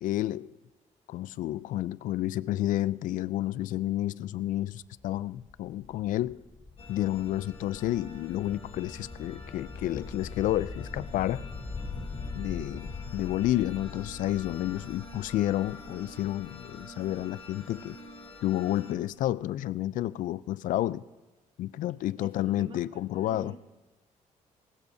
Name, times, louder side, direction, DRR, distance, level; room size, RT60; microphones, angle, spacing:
voice 1, 0.0-0.6 1.1-6.4 6.9-11.5 12.3-18.0 18.4-21.0 21.6-23.5, left 14 dB, 75° left, 0.4 m, -30 dB
sound 1, 4.8-18.4, left 4 dB, 15° left, 0.8 m, -43 dB
sound 2, 6.8-18.9, left 2 dB, 45° left, 5.1 m, -48 dB
voice 2, 22.2-23.6, right 4 dB, 40° right, 1.4 m, -49 dB
20.5 x 19.5 x 2.7 m
cardioid pair, 130°, 14 cm